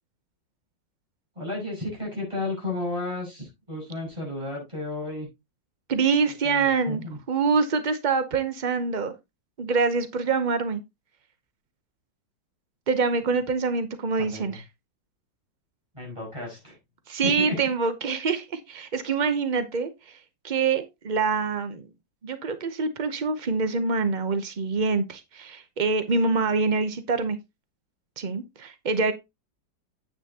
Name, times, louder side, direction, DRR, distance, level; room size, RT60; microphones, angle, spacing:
voice 1, 1.3-5.3 6.4-7.2 14.2-14.6 15.9-16.8 17.2-17.6, left 2 dB, 15° right, -2 dB, 6.6 m, -33 dB
voice 2, 5.9-7.0 7.3-9.1 9.6-10.8 12.9-14.6 17.1-20.2 20.4-21.8 22.2-27.4 28.2-29.1, right 4 dB, 65° right, 10 dB, 0.4 m, -25 dB
9.6 x 8.5 x 2.8 m, 0.22 s
omnidirectional pair, 2.0 m